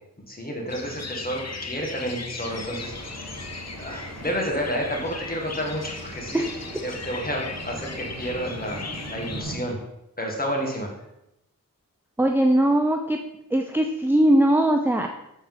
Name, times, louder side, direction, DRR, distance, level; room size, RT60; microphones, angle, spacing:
voice 1, 0.3-3.4 3.8-6.4 6.8-8.8 9.1-9.8 10.2-10.9, equal, 25° left, 0 dB, 1.9 m, -30 dB
sound 1, 0.7-9.4, left 4 dB, 50° left, 0.8 m, -37 dB
sound 2, 2.5-9.6, right 2 dB, 45° right, 1.5 m, -41 dB
voice 2, 12.2-13.2 13.5-15.1, right 1 dB, 5° right, 4 dB, 0.5 m, -20 dB
7.2 x 4.2 x 3.8 m, 0.86 s
cardioid pair, 40°, 34 cm